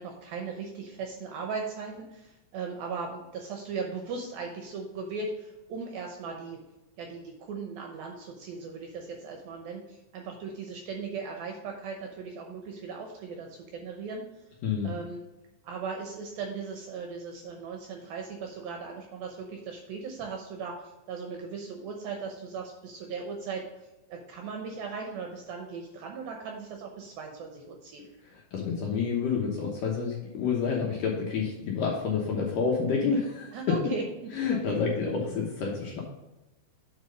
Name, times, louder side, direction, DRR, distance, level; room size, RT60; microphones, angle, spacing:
voice 1, 0.0-6.6 7.0-14.2 14.8-15.2 15.6-23.7 24.1-28.1 33.5-34.0 34.5-34.8 35.3-35.4, right 5 dB, 75° right, 2 dB, 2.3 m, -38 dB
voice 2, 28.3-33.6 34.3-36.0, left 5 dB, 70° left, -2 dB, 2.2 m, -29 dB
8.6 x 4.4 x 5.2 m, 1.0 s
omnidirectional pair, 5.1 m